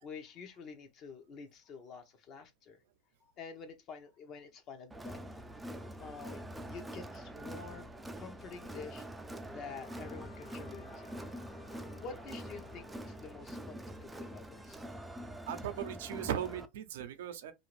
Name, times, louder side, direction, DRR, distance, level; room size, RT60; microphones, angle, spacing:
voice 1, 0.0-2.8 3.2-5.3 6.0-9.1 9.5-11.2 12.0-14.8, left 5 dB, 45° left, 0.9 m, -48 dB
Crowd, 4.9-16.7, right 1 dB, 10° right, 0.4 m, -45 dB
Wind instrument woodwind instrument, 9.6-13.6, left 7 dB, 65° left, 1.2 m, -57 dB
voice 2, 15.5-17.5, right 10 dB, 85° right, 0.6 m, -38 dB
2.6 x 2.4 x 3.1 m
supercardioid pair, 115°, 0 cm